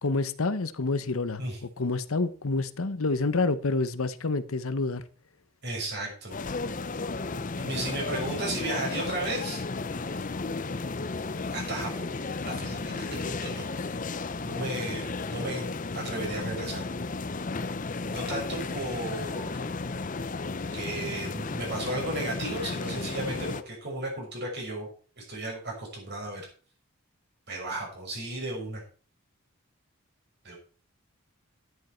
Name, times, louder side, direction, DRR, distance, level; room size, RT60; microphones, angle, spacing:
voice 1, 0.0-1.4 1.8-5.0, left 3 dB, 75° left, 0.9 m, -28 dB
voice 2, 5.6-6.4 7.6-9.6 10.2-10.4 11.5-12.1 12.4-13.6 14.4-15.7 15.9-16.8 18.0-19.6 20.7-24.9 25.2-26.4 27.5-28.8 30.4-30.6, right 2 dB, 50° right, 6.2 m, -34 dB
sound 1, 6.3-23.6, left 3 dB, 35° left, 0.6 m, -34 dB
11.5 x 10.5 x 4.4 m
head